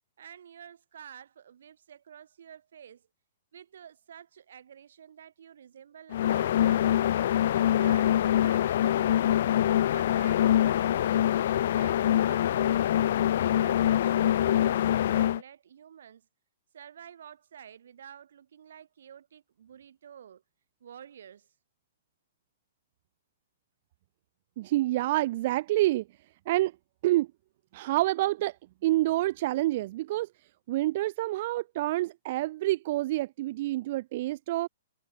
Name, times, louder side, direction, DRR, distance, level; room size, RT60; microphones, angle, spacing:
voice 1, 0.2-3.1 3.5-7.1 7.5-9.4 9.9-13.0 13.3-16.3 16.7-20.4 20.8-21.5, right 9 dB, 65° right, 3.9 m, -50 dB
sound 1, 6.1-15.4, left 11 dB, 50° left, 0.6 m, -24 dB
voice 2, 24.6-26.0 26.5-26.7 27.0-27.3 27.7-28.6 28.8-30.3 30.7-34.7, right 16 dB, 35° right, 0.6 m, -27 dB
hypercardioid pair, 170°, 0 cm